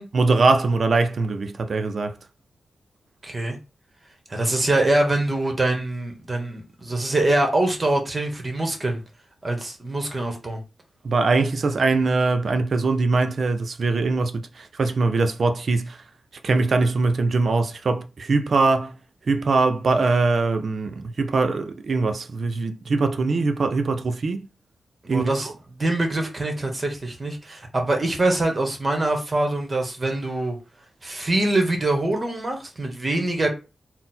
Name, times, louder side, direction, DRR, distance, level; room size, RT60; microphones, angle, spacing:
voice 1, 0.1-2.1 11.0-16.0 16.4-18.9 19.3-24.5 25.1-25.3, right 3 dB, 60° right, 0.5 m, -22 dB
voice 2, 3.2-3.6 4.3-9.0 9.4-10.6 25.0-25.5 25.8-30.6 31.0-33.5, right 2 dB, 30° right, 1.1 m, -24 dB
4.0 x 2.0 x 4.2 m
cardioid pair, 80°, 0 cm